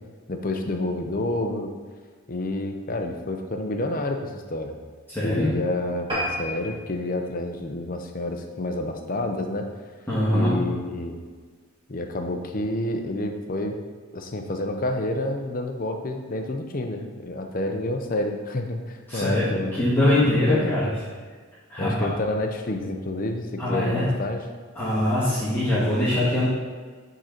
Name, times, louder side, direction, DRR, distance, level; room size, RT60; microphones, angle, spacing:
voice 1, 0.3-1.7 2.3-4.8 5.2-9.6 10.3-11.2 11.9-13.8 14.1-19.8 20.5-20.7 21.8-24.4, left 1 dB, 40° left, 4 dB, 0.6 m, -29 dB
voice 2, 5.1-5.5 10.1-10.6 19.1-20.9 21.7-22.1 23.6-24.1 24.7-26.5, left 1 dB, 10° left, -11 dB, 1.5 m, -22 dB
sound 1, 6.1-8.8 9.3-9.5 10.0-10.1 10.4-10.5 10.7-10.8, equal, 20° right, 1.4 m, -33 dB
7.6 x 3.9 x 4.4 m, 1.5 s
head